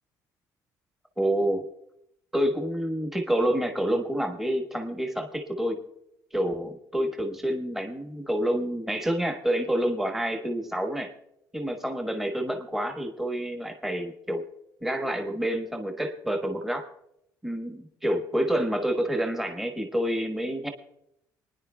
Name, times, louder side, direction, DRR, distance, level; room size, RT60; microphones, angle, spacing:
voice 1, 1.2-1.6 2.3-5.8 6.3-11.1 11.5-14.4 14.8-16.9 17.4-20.7, right 1 dB, 5° right, 3 dB, 1.2 m, -28 dB
29.5 x 10.0 x 2.2 m, 0.77 s
cardioid pair, 155°, 7 cm